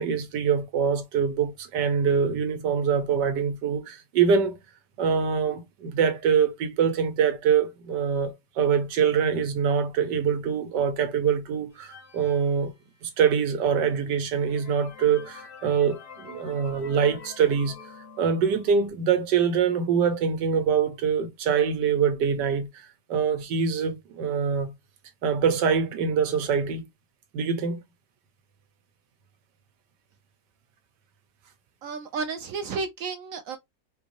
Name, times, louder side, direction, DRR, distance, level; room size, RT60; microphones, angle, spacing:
voice 1, 0.0-4.6 5.0-12.7 13.0-17.8 18.2-24.7 25.2-26.9 27.3-27.8, right 6 dB, 90° right, 1.5 m, -24 dB
sound 1, 11.7-13.3 13.9-14.0 14.4-18.9, left 6 dB, 55° left, 1.2 m, -47 dB
voice 2, 31.8-33.6, right 4 dB, 65° right, 0.9 m, -32 dB
4.4 x 2.7 x 2.9 m
omnidirectional pair, 1.8 m